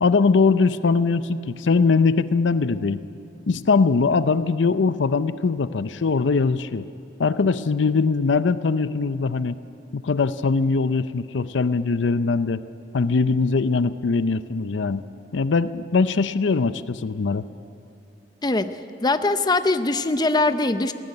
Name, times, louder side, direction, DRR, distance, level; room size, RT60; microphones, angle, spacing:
voice 1, 0.0-3.0 3.5-6.9 7.2-9.6 9.9-12.6 12.9-15.1 15.3-17.4, left 4 dB, 85° left, 14 dB, 0.5 m, -21 dB
voice 2, 19.0-20.9, left 2 dB, 25° left, 10 dB, 0.6 m, -21 dB
17.0 x 16.0 x 9.7 m, 2.7 s
head